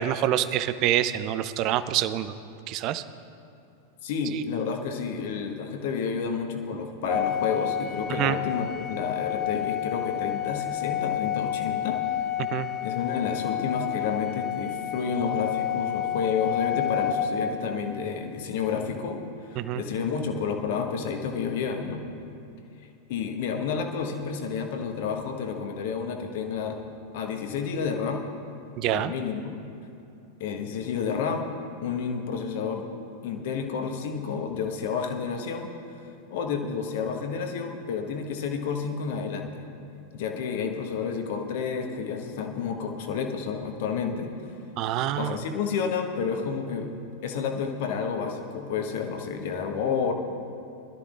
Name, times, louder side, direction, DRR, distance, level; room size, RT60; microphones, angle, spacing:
voice 1, 0.0-2.3 2.7-3.0 4.3-4.4 8.1-8.4 12.5-12.7 19.6-19.8 28.8-29.1 44.8-45.3, right 12 dB, 40° right, 13 dB, 0.5 m, -26 dB
voice 2, 4.0-12.0 12.8-19.2 19.4-22.0 23.1-26.8 27.1-28.2 28.9-29.5 30.4-31.5 31.8-32.9 33.2-35.7 36.0-39.7 40.1-44.5 45.2-46.9 47.2-50.1, left 6 dB, 50° left, 4 dB, 1.3 m, -30 dB
Organ, 7.1-17.9, left 10 dB, 25° left, 0.8 m, -30 dB
22.0 x 13.0 x 2.5 m, 2.7 s
figure-of-eight pair, 90°, 0 cm